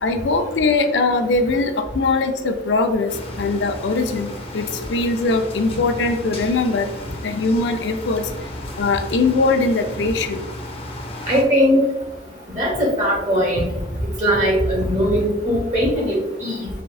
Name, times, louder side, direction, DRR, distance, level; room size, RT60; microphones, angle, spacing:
voice 1, 0.0-6.9 7.2-8.3 8.8-10.4, left 3 dB, 80° left, 7 dB, 0.4 m, -21 dB
sound 1, 3.1-11.4, left 1 dB, 35° left, 0.6 m, -34 dB
voice 2, 11.3-11.8 12.5-13.7 14.2-16.7, equal, 40° right, -2 dB, 1.4 m, -19 dB
4.3 x 3.5 x 2.3 m, 0.99 s
head